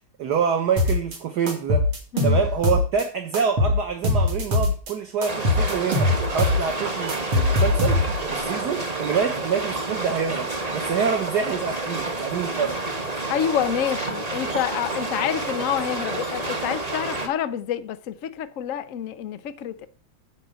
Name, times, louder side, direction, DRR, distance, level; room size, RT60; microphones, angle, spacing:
voice 1, 0.2-1.8 2.2-12.7, right 6 dB, 55° right, 1.6 m, -26 dB
sound 1, 0.8-1.2 1.5-3.0 3.3-4.9 5.2-8.3, left 2 dB, 75° right, 3.4 m, -22 dB
sound 2, 5.3-17.3, right 2 dB, 20° right, 1.3 m, -29 dB
voice 2, 13.3-19.9, left 10 dB, 80° left, 0.7 m, -28 dB
10.5 x 5.1 x 8.0 m
omnidirectional pair, 2.4 m